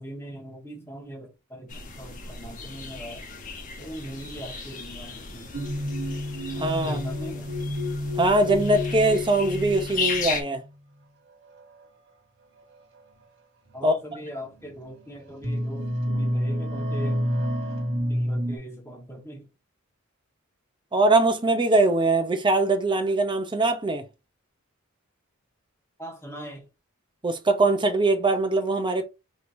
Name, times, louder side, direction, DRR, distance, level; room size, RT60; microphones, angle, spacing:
voice 1, 0.0-3.2 3.8-5.5 6.8-7.5 13.7-17.2 18.1-19.4 26.0-26.7, equal, 10° left, 1.3 m, -40 dB
sound 1, 1.7-10.4, left 5 dB, 40° left, 1.0 m, -36 dB
sound 2, 5.5-10.7 11.5-11.8 13.0-13.1 13.8-13.9 14.6-15.0 15.3-18.6, left 1 dB, 55° right, 1.7 m, -29 dB
voice 2, 6.6-7.0 8.2-10.6 13.8-13.9 20.9-24.0 27.2-29.0, right 2 dB, 20° right, 0.7 m, -22 dB
5.0 x 3.0 x 2.6 m
head